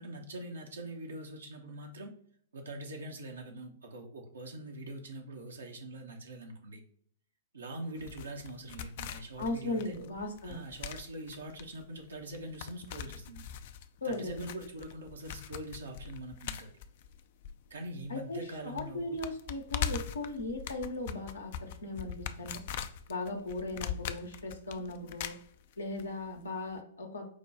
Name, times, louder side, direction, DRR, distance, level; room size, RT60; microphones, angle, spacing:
voice 1, 0.0-2.1 2.5-6.8 7.5-9.9 10.4-13.4 14.0-16.7 17.7-19.2, right 1 dB, 70° right, 2 dB, 0.7 m, -43 dB
sound 1, 8.0-18.1 18.3-18.4 18.8-26.0 26.3-26.4, left 9 dB, 50° left, 0.3 m, -41 dB
voice 2, 9.4-10.6 14.0-14.4 18.1-22.6 23.1-25.3 25.8-27.3, left 2 dB, 75° left, 2 dB, 0.7 m, -37 dB
4.9 x 2.2 x 3.9 m, 0.62 s
figure-of-eight pair, 105°, 0 cm